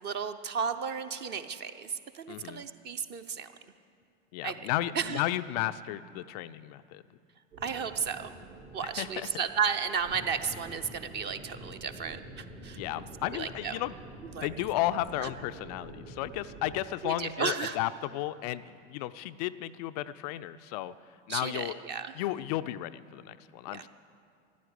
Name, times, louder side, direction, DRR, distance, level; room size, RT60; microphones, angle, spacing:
voice 1, 0.0-3.5 4.4-4.6 4.9-5.2 7.6-8.3 8.7-12.8 13.3-13.8 14.3-14.5 15.2-15.3 17.0-17.8 21.3-22.1 23.7-23.9, right 6 dB, 25° right, 9 dB, 0.6 m, -33 dB
voice 2, 2.3-2.6 4.3-7.0 9.0-9.3 12.7-13.9 14.3-20.9 21.3-21.8 22.2-23.9, left 14 dB, 35° left, 13 dB, 0.4 m, -33 dB
sound 1, 7.5-16.8, right 1 dB, 70° right, 4.1 m, -47 dB
14.5 x 11.0 x 8.3 m, 2.4 s
figure-of-eight pair, 80°, 38 cm